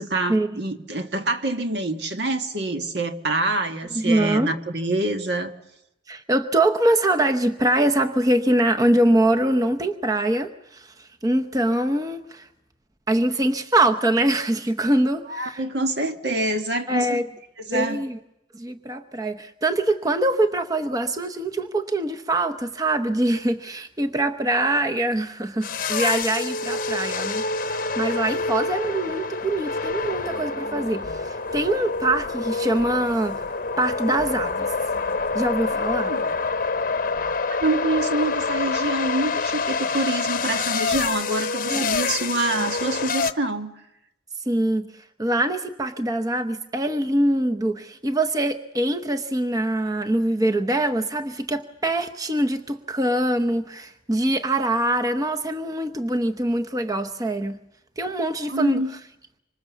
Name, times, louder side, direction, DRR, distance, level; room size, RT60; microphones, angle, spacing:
voice 1, 0.0-5.5 15.3-17.2 17.6-18.0 36.1-36.3 37.6-43.7 58.5-58.9, right 2 dB, 65° right, 6 dB, 1.6 m, -26 dB
voice 2, 3.9-4.5 6.1-12.5 13.1-15.6 16.9-17.2 17.7-18.2 18.5-33.4 33.8-34.7 35.3-36.2 41.7-41.9 42.5-42.7 44.5-57.6 58.0-58.8, right 1 dB, 20° right, 5 dB, 0.8 m, -23 dB
sound 1, 25.6-43.3, left 4 dB, 50° left, 0.9 m, -27 dB
sound 2, 31.0-31.3 31.5-31.7 32.8-33.5 34.2-34.6 34.9-37.4, equal, 90° right, 4.7 m, -46 dB
25.5 x 25.5 x 7.2 m, 0.86 s
head